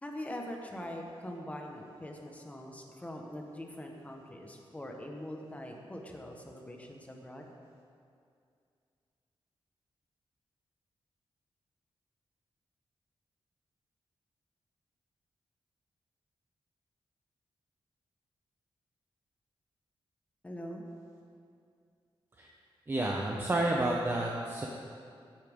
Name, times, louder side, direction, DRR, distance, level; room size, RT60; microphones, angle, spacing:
voice 1, 0.0-7.5 20.4-20.8, left 1 dB, 15° left, 1 dB, 1.1 m, -43 dB
voice 2, 22.9-24.7, right 1 dB, 20° right, -1 dB, 0.8 m, -30 dB
15.5 x 8.6 x 3.6 m, 2.3 s
wide cardioid pair, 155°, 10 cm